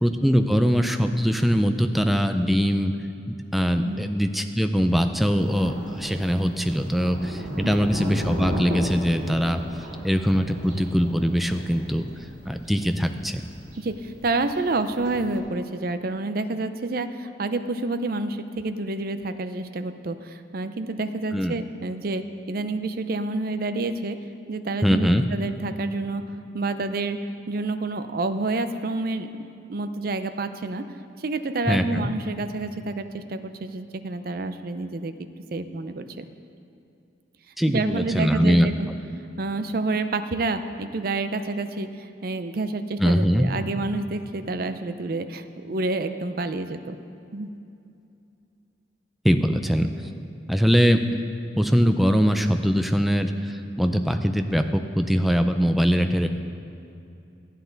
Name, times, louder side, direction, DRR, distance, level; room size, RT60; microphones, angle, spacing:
voice 1, 0.0-2.9 3.3-9.6 10.0-12.1 12.5-13.4 21.3-21.5 24.8-25.2 31.7-32.1 37.6-38.9 43.0-43.5 49.2-49.9 50.5-51.2 51.6-56.3, equal, ahead, 6 dB, 0.4 m, -22 dB
Thunder, 5.4-15.4, equal, 70° right, 2.3 m, -35 dB
voice 2, 13.8-24.2 24.5-26.2 26.5-29.3 29.7-30.8 31.2-35.1 35.5-36.2 37.7-38.7 39.4-47.0 47.3-47.5, right 2 dB, 55° right, 10 dB, 0.5 m, -28 dB
13.0 x 9.1 x 4.0 m, 2.6 s
head